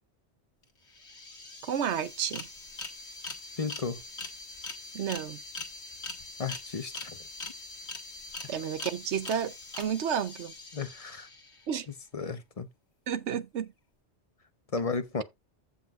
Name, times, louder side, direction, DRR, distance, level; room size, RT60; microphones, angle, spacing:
sound 1, 0.6-0.7 0.9-11.7, left 3 dB, 75° left, 2.0 m, -43 dB
voice 1, 1.6-2.5 4.9-5.4 8.5-10.5 11.7-11.9 13.1-13.7, right 8 dB, 80° right, 1.1 m, -31 dB
voice 2, 3.6-4.0 6.4-7.2 10.7-11.3 12.1-12.7 14.7-15.2, left 4 dB, 35° left, 0.9 m, -33 dB
15.0 x 5.4 x 2.5 m
omnidirectional pair, 1.2 m